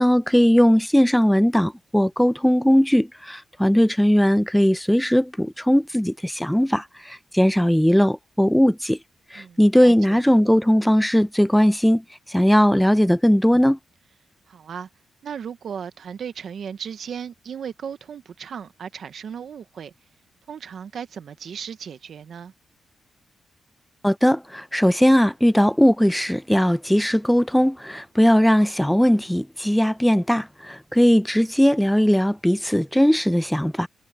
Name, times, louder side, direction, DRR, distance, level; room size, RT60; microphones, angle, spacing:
voice 1, 0.0-9.0 9.3-13.8 24.0-33.9, equal, 5° left, 0.6 m, -19 dB
voice 2, 9.4-10.4 14.5-14.9 15.2-19.9 20.5-22.5, right 7 dB, 70° right, 0.8 m, -36 dB
cardioid pair, 90°, 0 cm